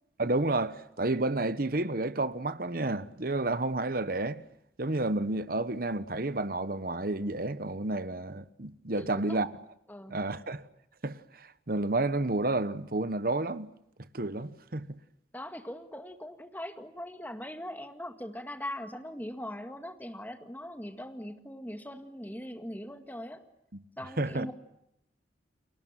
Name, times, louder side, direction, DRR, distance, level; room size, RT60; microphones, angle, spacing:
voice 1, 0.2-4.4 4.8-9.5 10.1-10.6 11.0-13.7 14.1-15.0 24.2-24.5, right 2 dB, 50° right, 1.1 m, -30 dB
voice 2, 9.9-10.2 15.3-23.4 24.0-24.5, left 1 dB, 10° left, 1.9 m, -41 dB
30.0 x 22.5 x 7.5 m
head